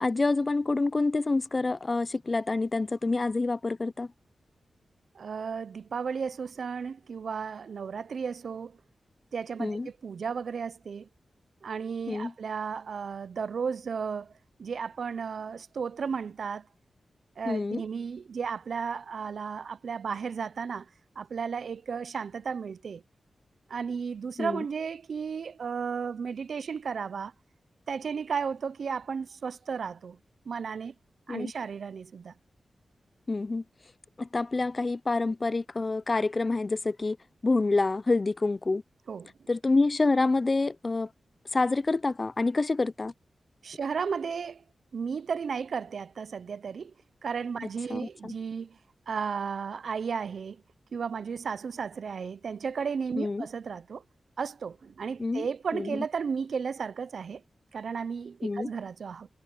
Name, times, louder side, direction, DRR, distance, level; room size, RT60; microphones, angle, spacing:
voice 1, 0.0-4.1 9.6-9.9 12.1-12.3 17.5-17.8 24.4-24.6 31.3-31.5 33.3-33.6 34.2-37.2 37.4-38.8 39.5-41.1 41.5-43.1 47.9-48.3 53.2-53.5 55.2-55.5 55.7-56.0 58.4-58.7, left 3 dB, 40° left, 0.5 m, -27 dB
voice 2, 5.1-8.8 9.3-11.1 11.6-14.3 14.6-16.7 17.4-20.9 21.2-23.0 23.7-27.3 27.9-30.2 30.5-30.9 31.3-32.3 39.1-39.5 43.6-44.6 44.9-46.9 47.2-48.8 49.1-50.6 50.9-54.0 54.4-57.4 57.7-59.3, right 6 dB, 75° right, 0.7 m, -34 dB
cardioid pair, 55°, 0 cm